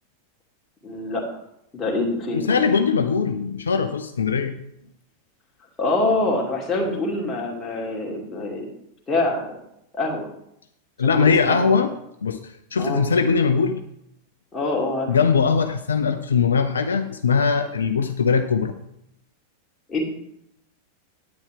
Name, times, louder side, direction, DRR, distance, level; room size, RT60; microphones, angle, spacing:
voice 1, 0.8-1.2 1.7-2.6 5.8-8.7 9.1-9.5 9.9-10.3 11.0-11.9 12.8-13.0 14.5-15.2 19.9-20.0, left 2 dB, 20° left, -2 dB, 2.6 m, -25 dB
voice 2, 2.3-4.5 11.0-11.9 12.2-13.8 15.1-18.7, left 5 dB, 70° left, 8 dB, 0.6 m, -21 dB
9.7 x 9.1 x 3.5 m, 0.77 s
figure-of-eight pair, 90°, 0 cm